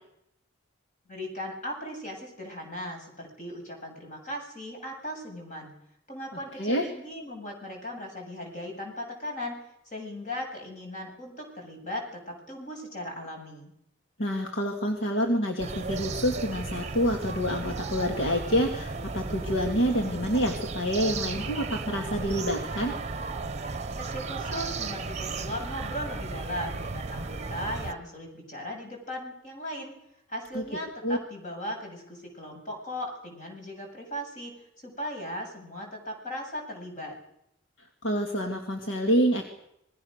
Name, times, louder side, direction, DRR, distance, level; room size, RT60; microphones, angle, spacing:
voice 1, 1.1-5.7 6.1-9.6 9.9-13.7 23.9-29.9 30.3-37.2, left 1 dB, 40° left, 2 dB, 8.0 m, -38 dB
voice 2, 14.2-22.9 30.5-30.6 31.0-31.2 38.0-39.4, equal, 65° left, 3 dB, 2.3 m, -27 dB
sound 1, 15.6-27.9, right 3 dB, 35° right, 1.0 m, -35 dB
27.0 x 21.0 x 6.6 m, 0.79 s
head